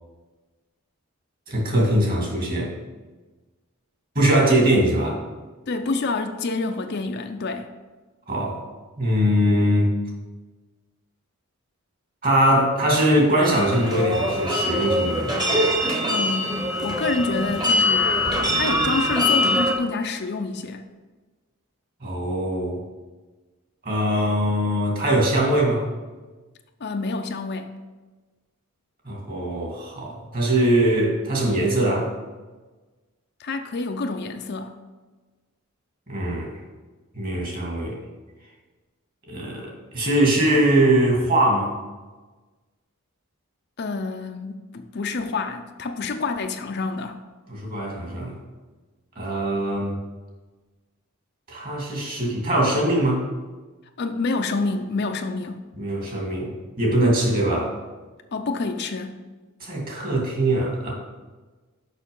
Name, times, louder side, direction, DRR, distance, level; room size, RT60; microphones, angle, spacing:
voice 1, 1.5-2.7 4.2-5.2 8.3-8.6 9.0-9.9 12.2-15.4 22.0-22.8 23.8-25.9 29.1-32.1 36.1-36.5 37.1-38.0 39.3-41.8 47.5-48.3 49.2-50.0 51.5-53.2 55.7-57.7 59.6-60.9, right 1 dB, 40° right, -2 dB, 2.2 m, -22 dB
voice 2, 5.7-7.7 16.1-20.8 26.8-27.7 33.4-34.7 43.8-47.2 54.0-55.6 58.3-59.2, left 3 dB, 50° left, 6 dB, 0.6 m, -28 dB
sound 1, 13.4-19.7, left 1 dB, 20° right, 1.1 m, -23 dB
6.5 x 5.8 x 5.4 m, 1.3 s
head